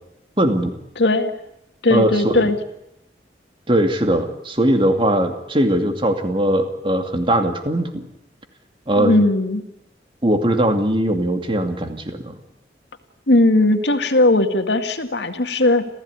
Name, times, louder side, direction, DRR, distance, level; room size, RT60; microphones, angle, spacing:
voice 1, 0.4-0.8 1.9-2.5 3.7-8.0 8.9-9.2 10.2-12.4, right 1 dB, 30° right, 6 dB, 2.5 m, -20 dB
voice 2, 1.0-1.3 1.8-2.6 9.0-9.6 13.3-15.9, left 2 dB, 75° left, 7 dB, 2.1 m, -17 dB
28.5 x 15.5 x 9.7 m, 0.84 s
head